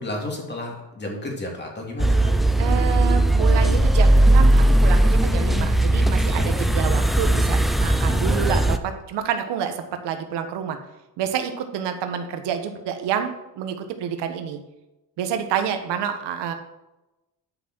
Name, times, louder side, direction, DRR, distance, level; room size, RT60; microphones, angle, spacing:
voice 1, 0.0-2.3, left 1 dB, 25° left, 0 dB, 2.8 m, -32 dB
sound 1, 2.0-8.8, right 1 dB, ahead, 0.6 m, -18 dB
voice 2, 2.6-10.8 11.2-14.6 15.2-16.5, right 8 dB, 85° right, 7 dB, 1.3 m, -28 dB
10.5 x 5.8 x 6.2 m, 0.97 s
cardioid pair, 110°, 41 cm